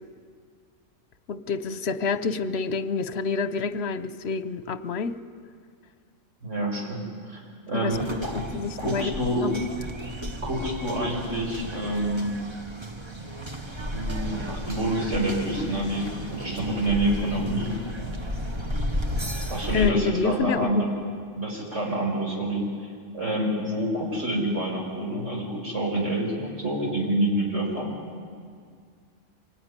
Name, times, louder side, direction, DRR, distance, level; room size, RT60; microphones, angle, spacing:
voice 1, 1.3-5.1 7.7-9.1 9.4-9.6 19.7-20.8, left 4 dB, 60° left, 12 dB, 1.1 m, -28 dB
voice 2, 6.4-7.4 7.7-8.4 8.8-9.4 10.4-12.4 13.9-17.7 19.5-20.9 21.3-22.7 23.1-27.9, right 1 dB, 70° right, -1 dB, 5.7 m, -27 dB
sound 1, 7.9-19.9, equal, 25° right, 1.2 m, -33 dB
24.5 x 18.0 x 9.8 m, 2.1 s
omnidirectional pair, 1.3 m